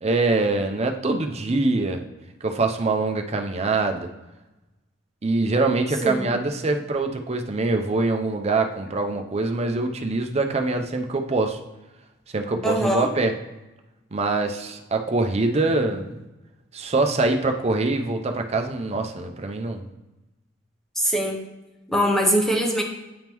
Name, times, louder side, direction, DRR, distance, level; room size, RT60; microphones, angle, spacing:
voice 1, 0.0-2.0 2.4-4.1 5.2-11.6 12.3-13.3 14.1-16.2 16.7-19.8, right 3 dB, 35° right, 5 dB, 0.5 m, -24 dB
voice 2, 6.0-6.3 12.6-13.1 21.0-21.4 21.9-22.8, equal, ahead, 0 dB, 0.8 m, -22 dB
9.3 x 3.6 x 3.0 m, 1.0 s
head